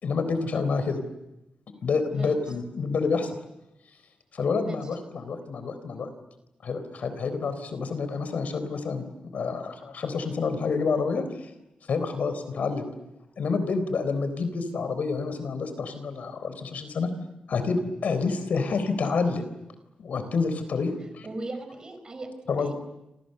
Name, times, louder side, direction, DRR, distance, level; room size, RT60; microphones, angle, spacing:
voice 1, 0.0-1.0 1.8-3.3 4.3-6.1 6.6-9.0 9.3-11.5 11.9-12.9 13.4-17.1 17.5-19.5 20.0-21.3 22.5-22.7, left 4 dB, 65° left, 10 dB, 4.0 m, -28 dB
voice 2, 21.2-22.3 22.6-22.7, right 2 dB, 30° right, 7 dB, 5.1 m, -37 dB
28.5 x 28.0 x 6.8 m, 0.91 s
wide cardioid pair, 150°, 3 cm